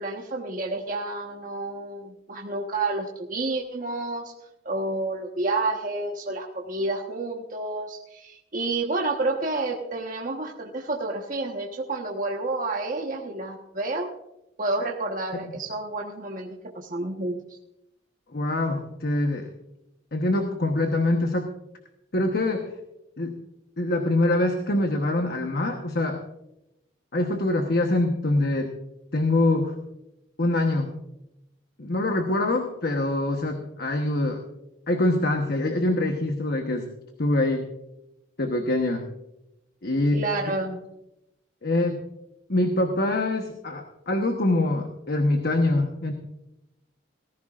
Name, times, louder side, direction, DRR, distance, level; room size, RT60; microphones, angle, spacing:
voice 1, 0.0-4.3 4.6-14.1 14.6-17.4 40.1-40.8, right 2 dB, 45° right, -1 dB, 1.3 m, -30 dB
voice 2, 18.3-19.5 20.1-21.5 22.1-22.7 23.2-23.4 23.8-26.2 27.1-28.7 29.1-29.7 30.4-31.0 31.8-34.4 34.9-36.9 37.2-37.7 38.4-39.1 39.8-40.3 41.6-42.0 42.5-46.1, left 2 dB, 50° left, 4 dB, 1.1 m, -24 dB
18.5 x 15.0 x 2.5 m, 0.86 s
head